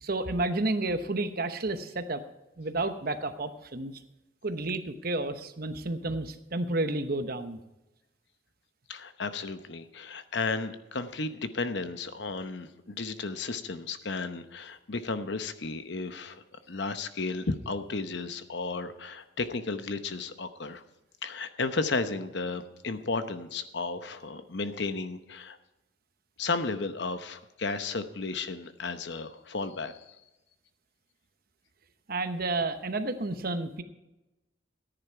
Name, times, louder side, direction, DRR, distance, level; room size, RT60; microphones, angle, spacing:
voice 1, 0.0-2.2 2.6-4.0 4.4-7.6 32.1-33.8, right 2 dB, 50° right, 9 dB, 0.9 m, -31 dB
voice 2, 8.9-20.8 21.2-25.6 26.4-30.0, left 3 dB, 60° left, 10 dB, 0.9 m, -33 dB
14.5 x 10.0 x 4.6 m, 0.96 s
head